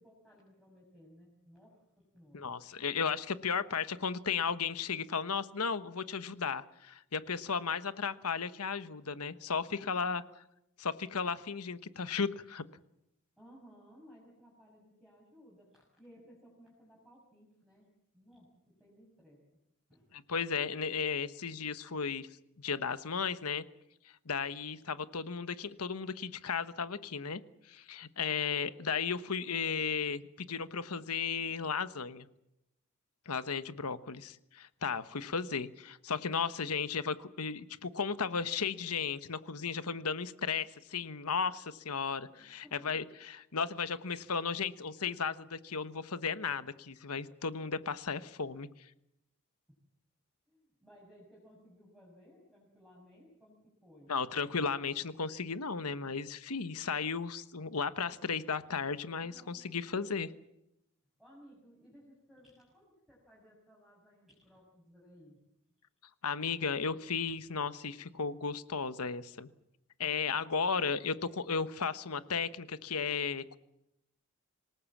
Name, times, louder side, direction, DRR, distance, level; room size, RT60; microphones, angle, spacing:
voice 1, 0.0-2.6 9.6-10.1 13.4-19.6 19.9-20.2 42.3-43.0 49.7-49.8 50.5-54.2 59.2-59.6 60.0-60.3 61.2-65.4, equal, ahead, -5 dB, 6.1 m, -59 dB
voice 2, 2.3-10.2 10.8-12.6 20.1-22.3 22.6-23.6 24.0-27.4 27.7-32.3 33.3-48.9 54.1-60.3 66.2-69.5 70.0-73.6, left 5 dB, 85° left, 13 dB, 1.2 m, -35 dB
26.5 x 19.0 x 7.3 m, 0.83 s
head